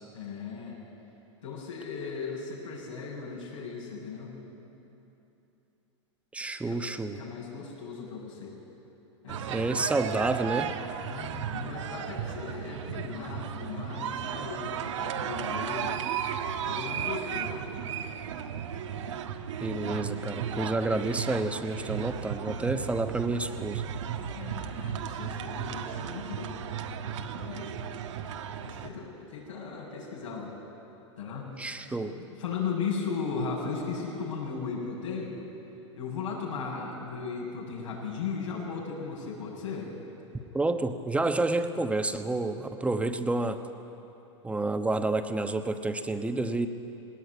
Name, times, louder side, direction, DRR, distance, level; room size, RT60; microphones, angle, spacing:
voice 1, 0.1-0.8 1.4-4.4 6.7-6.8 7.2-8.5 9.2-9.9 11.0-15.9 16.6-17.6 19.8-20.1 24.3-26.6 27.0-27.8 28.6-30.5 31.2-31.6 31.9-35.3 36.0-39.9, left 5 dB, 85° left, -4 dB, 7.5 m, -37 dB
voice 2, 6.3-7.2 9.5-10.7 19.6-23.8 31.6-32.2 40.5-43.6 44.4-46.7, right 2 dB, 10° right, 7 dB, 1.1 m, -29 dB
sound 1, 9.3-28.9, right 8 dB, 75° right, 1.4 m, -35 dB
19.0 x 18.5 x 9.5 m, 3.0 s
hypercardioid pair, 115°, 16 cm